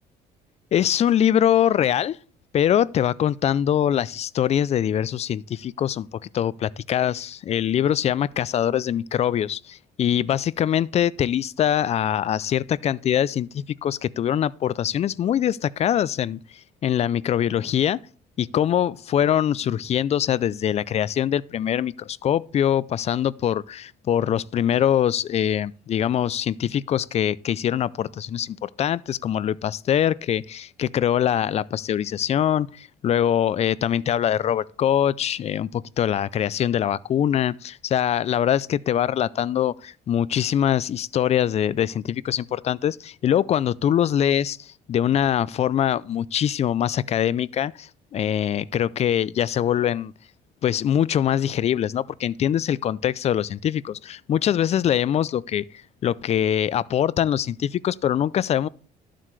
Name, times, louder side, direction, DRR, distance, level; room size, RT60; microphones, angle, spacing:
voice 1, 0.7-2.2 2.5-16.4 16.8-18.0 18.4-50.1 50.6-55.6 56.0-58.7, left 10 dB, 40° left, 0.4 m, -23 dB
12.0 x 7.5 x 3.2 m
cardioid pair, 110°, 17 cm